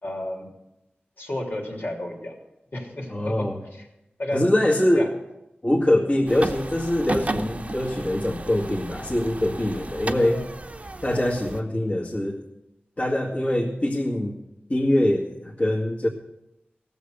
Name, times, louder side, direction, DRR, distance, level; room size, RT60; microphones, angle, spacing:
voice 1, 0.0-0.5 1.2-2.3 2.7-3.8 4.2-4.5 4.9-5.1, left 1 dB, 65° left, -1 dB, 3.2 m, -32 dB
voice 2, 3.1-3.6 4.3-5.1 5.6-10.5 11.0-12.4 13.0-14.4 14.7-16.1, left 1 dB, 40° left, -5 dB, 2.1 m, -23 dB
sound 1, 6.3-11.6, right 2 dB, 35° right, 0.9 m, -34 dB
16.0 x 7.2 x 6.7 m, 0.91 s
wide cardioid pair, 65°, 4 cm